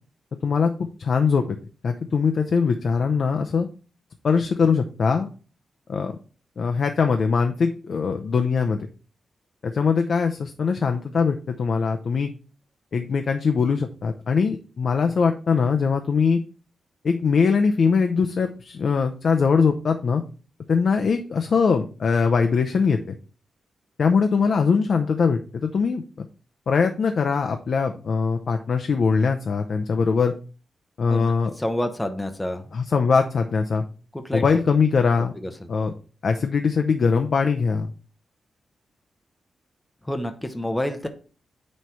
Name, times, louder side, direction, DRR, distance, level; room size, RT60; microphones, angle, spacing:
voice 1, 0.4-1.6 1.8-3.7 4.2-5.3 5.9-6.2 6.6-8.9 9.6-12.3 12.9-16.4 17.0-20.2 20.7-23.1 24.0-26.3 26.7-30.3 31.0-31.5 32.7-33.8 34.3-35.3 35.7-35.9 36.2-37.9, left 5 dB, 50° left, 5 dB, 0.6 m, -22 dB
voice 2, 31.6-32.6 34.1-34.4 35.4-35.5 40.0-41.1, left 1 dB, 10° left, 6 dB, 0.8 m, -28 dB
9.3 x 3.2 x 5.7 m, 0.37 s
wide cardioid pair, 165°, 0 cm